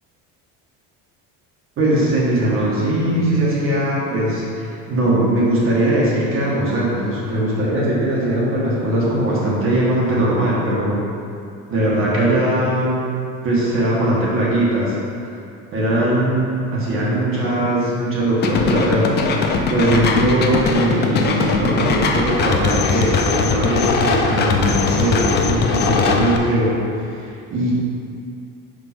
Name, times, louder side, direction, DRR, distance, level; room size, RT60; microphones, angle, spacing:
voice 1, 1.8-11.0 11.7-13.0 13.4-14.9 15.2-15.3 15.7-19.2 19.7-26.8 27.2-27.7, right 1 dB, 40° right, -6 dB, 1.5 m, -20 dB
sound 1, 18.4-26.4, left 4 dB, 30° left, 0.4 m, -20 dB
5.2 x 4.8 x 5.9 m, 2.5 s
cardioid pair, 170°, 33 cm